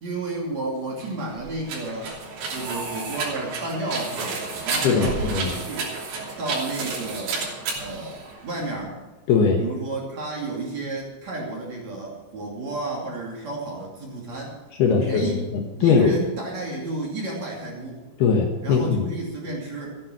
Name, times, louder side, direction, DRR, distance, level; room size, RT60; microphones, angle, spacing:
voice 1, 0.0-2.1 2.5-6.0 6.4-9.0 9.6-14.6 14.9-15.4 15.8-18.1 18.6-20.0, right 2 dB, 40° right, -2 dB, 3.3 m, -32 dB
sound 1, 0.9-8.8, right 4 dB, 65° right, 5.2 m, -31 dB
voice 2, 4.7-5.6 9.3-9.6 14.8-16.2 18.2-19.1, left 5 dB, 65° left, 2 dB, 2.8 m, -21 dB
15.0 x 11.0 x 6.0 m, 1.2 s
omnidirectional pair, 5.7 m